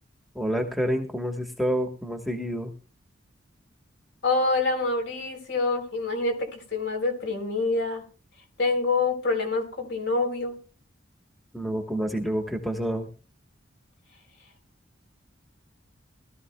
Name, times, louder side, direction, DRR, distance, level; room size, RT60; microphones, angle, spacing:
voice 1, 0.3-2.7 11.5-13.1, equal, ahead, 3 dB, 1.2 m, -28 dB
voice 2, 4.2-8.0 8.6-10.6, left 3 dB, 60° left, 4 dB, 3.7 m, -26 dB
20.5 x 13.5 x 2.2 m, 0.37 s
head